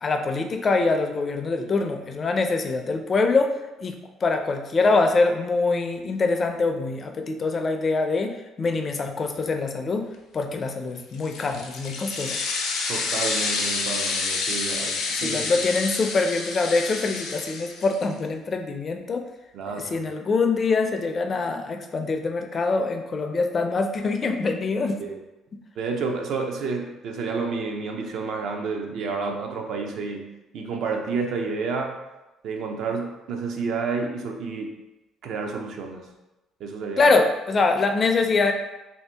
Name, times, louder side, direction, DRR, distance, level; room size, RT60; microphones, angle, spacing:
voice 1, 0.0-3.5 3.8-4.0 4.2-10.1 10.3-12.4 14.8-14.9 15.2-19.2 19.9-25.0 37.0-38.5, left 3 dB, 35° left, 5 dB, 0.4 m, -24 dB
sound 1, 11.1-18.1, left 4 dB, 80° left, 0.6 m, -29 dB
voice 2, 12.9-15.6 19.5-20.1 25.0-25.2 25.8-32.0 32.4-34.8 35.2-36.1 36.6-37.1, right 4 dB, 65° right, 2 dB, 0.5 m, -30 dB
2.8 x 2.7 x 3.3 m, 1.0 s
cardioid pair, 120°, 0 cm